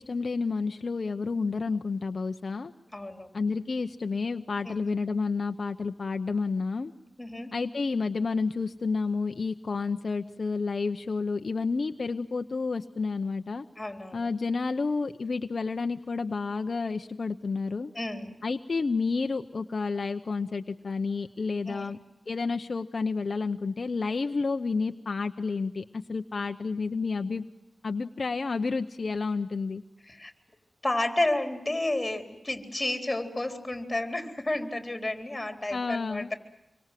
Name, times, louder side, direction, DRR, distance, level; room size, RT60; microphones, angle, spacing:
voice 1, 0.0-2.7 3.3-6.9 7.5-13.6 14.1-17.9 18.4-22.0 22.3-27.4 27.8-29.8 35.7-36.3, left 4 dB, 55° left, 7 dB, 0.8 m, -30 dB
voice 2, 2.9-3.3 4.6-4.9 7.2-7.5 13.8-14.3 17.9-18.3 21.7-21.9 30.0-30.3 30.8-36.3, left 2 dB, 20° left, 6 dB, 3.9 m, -31 dB
26.5 x 24.0 x 7.6 m, 0.90 s
wide cardioid pair, 90°, 0 cm